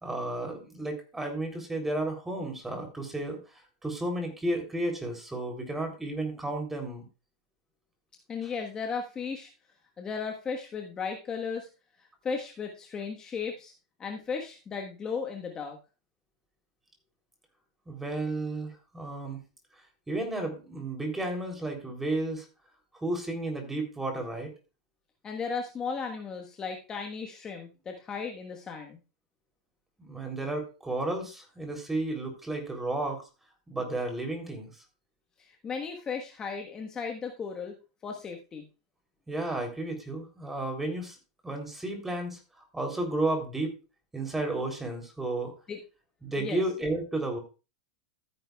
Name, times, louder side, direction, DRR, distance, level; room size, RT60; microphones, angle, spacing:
voice 1, 0.0-7.0 8.4-8.5 17.9-19.4 20.1-22.5 22.9-24.5 30.0-33.3 33.7-34.8 39.3-41.2 41.4-43.8 44.1-45.5 46.2-47.4, right 2 dB, 10° right, 3 dB, 3.3 m, -33 dB
voice 2, 8.3-9.5 10.0-11.7 12.2-13.7 14.0-15.8 25.2-29.0 35.4-37.7 38.0-38.6 45.7-45.8 46.4-46.6, left 5 dB, 25° left, 2 dB, 1.4 m, -35 dB
14.0 x 9.9 x 2.4 m, 0.31 s
hypercardioid pair, 125°, 3 cm